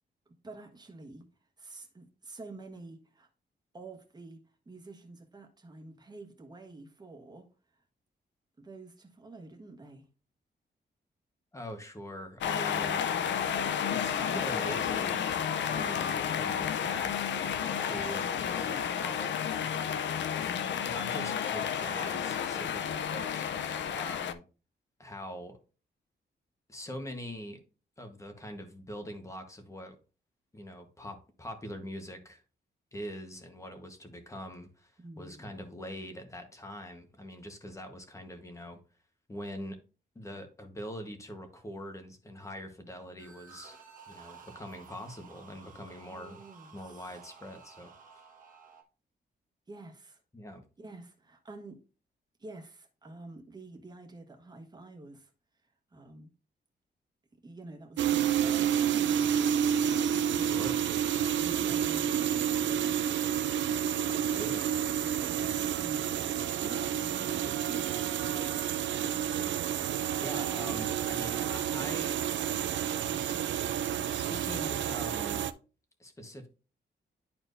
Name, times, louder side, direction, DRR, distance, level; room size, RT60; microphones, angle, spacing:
voice 1, 0.4-1.3 1.6-3.3 3.7-4.4 4.6-7.5 8.6-10.1 35.0-35.6 45.6-47.2 49.7-50.2 50.8-51.8 52.4-55.3 55.9-56.3 57.3-59.4 61.4-63.0 65.0-66.1 66.4-68.4, right 2 dB, 20° right, 1.3 m, -48 dB
voice 2, 11.5-13.1 13.9-15.3 15.7-19.4 20.8-23.5 23.8-24.4 25.0-25.6 26.7-27.6 28.0-30.0 30.5-32.4 32.9-38.8 39.3-39.8 40.1-43.8 44.1-46.4 46.7-47.9 50.3-50.6 60.3-60.8 64.1-64.7 70.2-72.2 72.9-73.4 74.1-75.5 76.0-76.5, equal, 15° left, 1.2 m, -43 dB
sound 1, 12.4-24.3, left 8 dB, 80° left, 0.6 m, -31 dB
sound 2, 43.2-48.8, right 6 dB, 45° right, 1.2 m, -53 dB
sound 3, 58.0-75.5, right 9 dB, 90° right, 0.5 m, -30 dB
11.0 x 4.4 x 2.6 m
wide cardioid pair, 150°, 19 cm